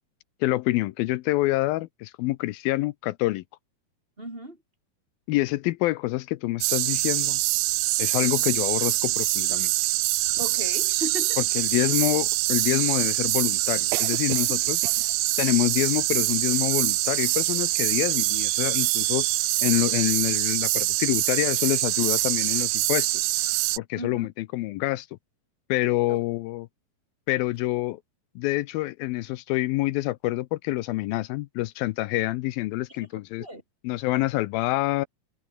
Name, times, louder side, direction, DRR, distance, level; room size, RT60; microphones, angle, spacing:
voice 1, 0.4-3.4 5.3-7.4 8.0-9.7 11.6-14.8 15.4-19.3 19.6-23.3 23.8-25.1 25.7-26.7 27.3-28.0 28.4-33.5 33.8-35.1, left 18 dB, 85° left, 2.4 m, -26 dB
voice 2, 4.2-4.6 10.4-11.4 14.8-15.1 24.0-24.3 26.1-26.2 33.4-33.6, right 1 dB, 15° right, 4.4 m, -36 dB
sound 1, 6.6-23.8, right 19 dB, 80° right, 2.5 m, -24 dB
omnidirectional pair, 4.3 m